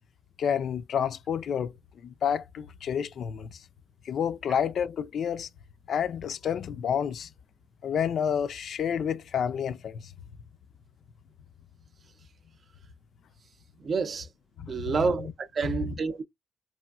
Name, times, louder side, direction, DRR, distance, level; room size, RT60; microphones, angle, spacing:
voice 1, 0.4-1.7 2.0-3.6 4.0-5.5 5.9-7.3 7.8-10.1 14.6-14.9 15.8-15.9, left 8 dB, 65° left, 0.4 m, -29 dB
voice 2, 13.8-14.3 14.7-16.2, right 5 dB, 50° right, 0.5 m, -28 dB
3.0 x 2.5 x 2.3 m
supercardioid pair, 55°, 0 cm